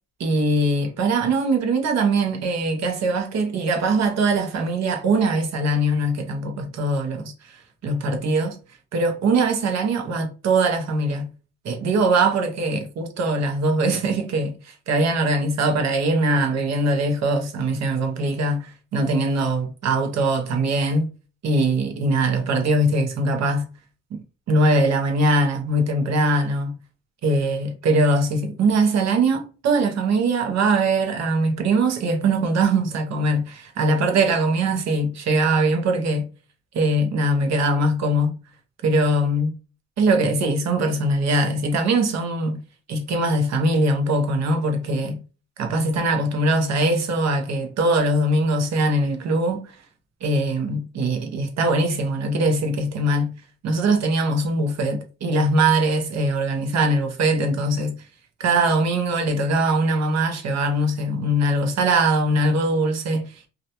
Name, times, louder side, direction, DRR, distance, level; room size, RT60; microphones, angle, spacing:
voice 1, 0.2-8.6 8.9-11.3 11.6-21.1 21.4-23.7 24.1-24.2 24.5-26.7 27.2-36.3 36.7-38.3 38.8-39.5 40.0-42.6 42.9-45.2 45.6-49.7 50.2-53.3 53.6-58.0 58.4-63.5, right 2 dB, 60° right, 0.7 m, -21 dB
2.4 x 2.1 x 2.8 m
cardioid pair, 90°, 30 cm